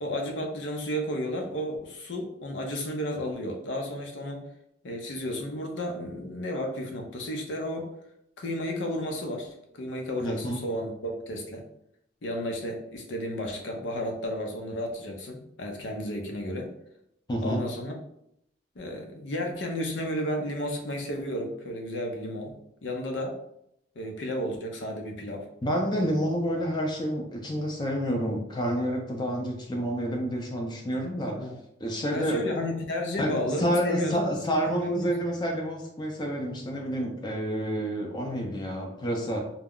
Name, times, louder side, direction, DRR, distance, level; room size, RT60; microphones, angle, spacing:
voice 1, 0.0-4.4 4.8-7.9 8.4-11.6 12.2-16.7 17.4-17.9 18.8-22.5 22.8-23.4 24.0-25.5 31.3-31.6 32.1-34.3 34.8-35.1, equal, 90° left, 2 dB, 0.6 m, -32 dB
voice 2, 10.2-10.6 17.3-17.6 25.6-31.5 31.8-32.4 33.2-39.4, equal, 25° left, 1 dB, 0.4 m, -29 dB
2.2 x 2.0 x 3.5 m, 0.76 s
head